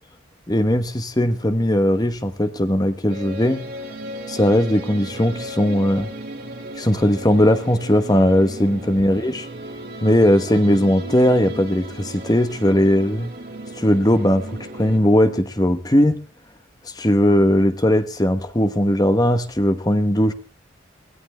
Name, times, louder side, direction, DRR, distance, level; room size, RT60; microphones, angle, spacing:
voice 1, 0.5-3.6 4.3-6.1 6.8-9.4 10.0-13.3 13.8-14.4 14.7-16.2 17.0-20.3, equal, 20° left, 8 dB, 1.1 m, -18 dB
sound 1, 3.1-15.0, right 1 dB, 50° right, 3.0 m, -35 dB
22.0 x 16.0 x 3.3 m, 0.37 s
head